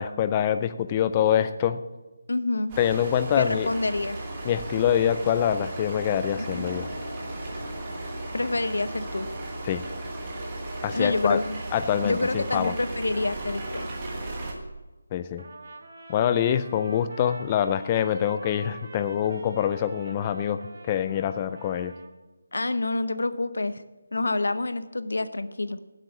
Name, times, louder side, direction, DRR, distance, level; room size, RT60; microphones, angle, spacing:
voice 1, 0.0-1.8 2.8-3.7 4.4-6.9 9.7-9.8 10.8-11.4 11.7-12.7 15.1-15.4 16.1-21.9, left 9 dB, 15° left, 11 dB, 0.3 m, -25 dB
voice 2, 2.3-2.7 3.4-4.2 8.3-9.3 10.9-11.6 12.0-13.9 22.5-23.8 24.1-25.8, left 2 dB, 90° left, 12 dB, 0.8 m, -27 dB
sound 1, 2.7-14.5, right 2 dB, 15° right, 1.3 m, -35 dB
sound 2, 6.3-12.8, left 1 dB, 30° left, 3.6 m, -44 dB
Trumpet, 15.4-22.1, right 2 dB, 40° right, 1.5 m, -46 dB
11.5 x 7.8 x 7.2 m, 1.1 s
figure-of-eight pair, 180°, 0 cm